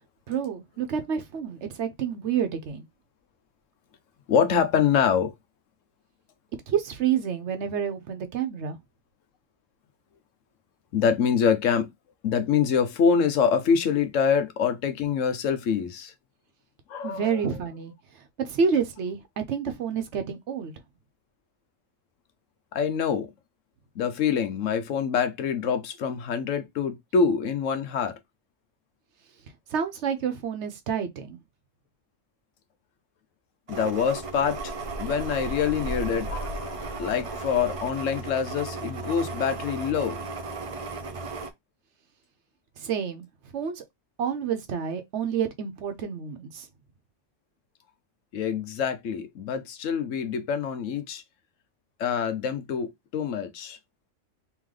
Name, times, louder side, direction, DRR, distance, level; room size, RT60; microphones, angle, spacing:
voice 1, 0.3-2.8 6.7-8.8 17.0-17.9 18.4-20.7 29.7-31.4 42.8-43.3 43.5-43.8 44.2-46.7, right 7 dB, 65° right, 1.0 m, -28 dB
voice 2, 4.3-5.3 10.9-11.9 12.2-16.1 16.9-17.6 22.7-23.3 24.0-28.2 33.7-34.7 35.0-40.2 48.3-51.2 52.0-53.8, left 7 dB, 85° left, 1.1 m, -25 dB
sound 1, 33.7-41.5, right 3 dB, 45° right, 0.5 m, -35 dB
3.8 x 3.0 x 3.2 m
omnidirectional pair, 1.3 m